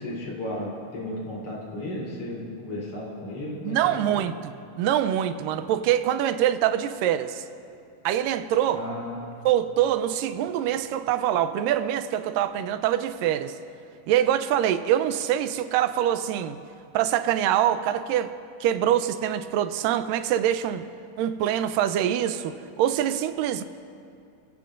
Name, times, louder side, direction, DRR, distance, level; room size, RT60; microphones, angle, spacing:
voice 1, 0.0-4.1 8.7-9.2, left 1 dB, 45° left, -5 dB, 4.3 m, -34 dB
voice 2, 3.6-7.4 8.1-8.9 9.5-13.6 14.1-16.6 16.9-18.3 18.6-20.9 21.2-23.6, right 11 dB, 85° right, 11 dB, 2.3 m, -24 dB
29.0 x 16.5 x 2.5 m, 2.5 s
omnidirectional pair, 3.8 m